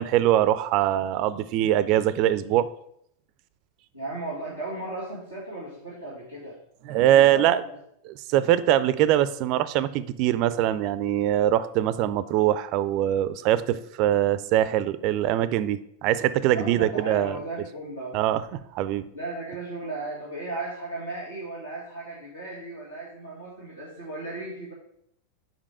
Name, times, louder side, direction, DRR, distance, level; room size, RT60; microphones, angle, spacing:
voice 1, 0.0-2.7 6.9-7.6 8.1-17.4 18.1-19.1, right 12 dB, 40° right, 15 dB, 0.4 m, -23 dB
voice 2, 3.9-6.6 7.2-7.8 16.5-18.1 19.1-24.7, right 2 dB, 80° left, -9 dB, 2.0 m, -36 dB
5.2 x 5.0 x 4.8 m, 0.72 s
figure-of-eight pair, 90°, 0 cm